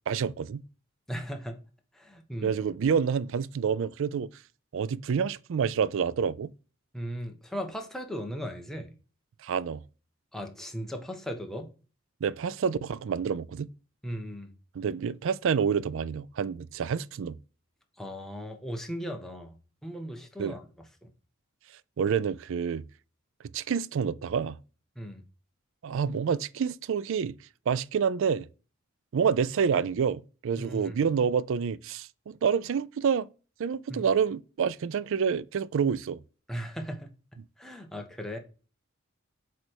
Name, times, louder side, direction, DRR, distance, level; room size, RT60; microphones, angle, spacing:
voice 1, 0.1-0.6 2.4-4.3 4.7-6.5 9.4-9.8 12.2-13.7 14.7-17.4 20.4-20.5 22.0-22.8 23.5-24.6 25.8-27.4 27.7-28.5 29.1-33.3 33.6-36.2, right 6 dB, 65° right, 0.4 m, -28 dB
voice 2, 1.1-1.6 1.9-2.6 6.9-8.9 10.3-11.7 14.0-14.5 18.0-20.9 25.0-25.2 30.6-31.0 33.9-34.1 36.5-37.1 37.6-38.4, equal, ahead, 1.0 m, -37 dB
8.1 x 3.3 x 4.5 m
head